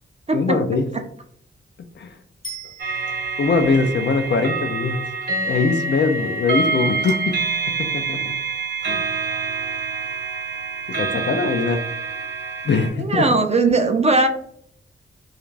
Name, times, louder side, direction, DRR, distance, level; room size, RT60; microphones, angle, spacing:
voice 1, 0.3-0.9 2.0-2.2 3.4-5.0 5.4-7.4 7.7-8.4 8.9-9.0 10.9-11.8 12.6-13.2, left 4 dB, 55° left, 7 dB, 0.4 m, -22 dB
Bicycle bell, 2.4-3.6 12.6-12.7, right 2 dB, 20° left, 0.7 m, -38 dB
sound 1, 2.8-12.9, right 4 dB, 55° right, 1.0 m, -26 dB
voice 2, 13.0-14.3, right 3 dB, 30° right, 6 dB, 0.4 m, -18 dB
2.4 x 2.4 x 3.1 m, 0.65 s
cardioid pair, 65°, 21 cm